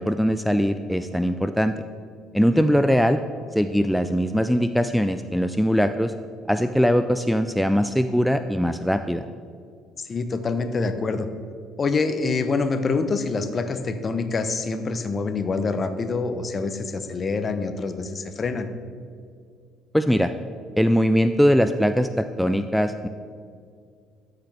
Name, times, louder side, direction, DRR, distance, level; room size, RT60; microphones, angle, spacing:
voice 1, 0.0-1.7 2.3-3.2 3.5-6.1 6.5-9.3 19.9-20.3 20.8-23.1, equal, ahead, 9 dB, 0.3 m, -21 dB
voice 2, 10.0-11.3 11.8-18.7, left 4 dB, 35° left, 10 dB, 0.7 m, -26 dB
13.0 x 6.0 x 3.3 m, 2.2 s
hypercardioid pair, 55°, 0 cm